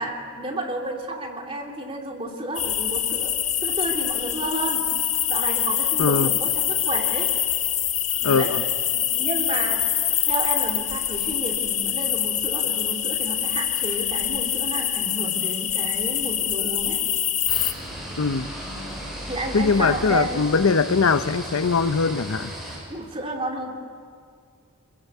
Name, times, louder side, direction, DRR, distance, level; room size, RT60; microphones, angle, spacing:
voice 1, 0.0-3.3 3.6-4.8 5.3-7.3 8.2-8.5 8.9-9.8 10.2-17.0 19.3-20.4 22.9-23.7, right 1 dB, 25° right, 0 dB, 2.9 m, -31 dB
sound 1, 2.5-17.7, left 10 dB, 30° left, 0.8 m, -25 dB
voice 2, 6.0-6.3 8.2-8.6 18.2-18.5 19.5-22.5, left 4 dB, 75° left, 13 dB, 0.7 m, -21 dB
sound 2, 17.5-22.8, equal, ahead, 6.8 m, -35 dB
25.5 x 21.0 x 8.4 m, 2.1 s
head